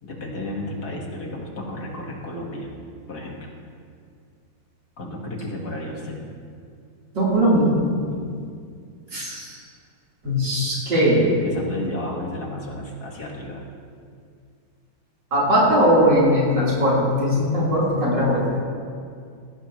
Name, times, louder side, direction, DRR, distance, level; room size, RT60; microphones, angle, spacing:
voice 1, 0.0-2.7 3.1-3.5 5.0-6.2 8.1-8.4 11.4-13.6, left 1 dB, 55° left, -1 dB, 2.3 m, -32 dB
voice 2, 7.1-7.7 9.1-9.6 10.2-11.4 15.3-18.4, equal, 70° right, -7 dB, 4.6 m, -19 dB
17.0 x 16.0 x 3.2 m, 2.2 s
omnidirectional pair, 2.0 m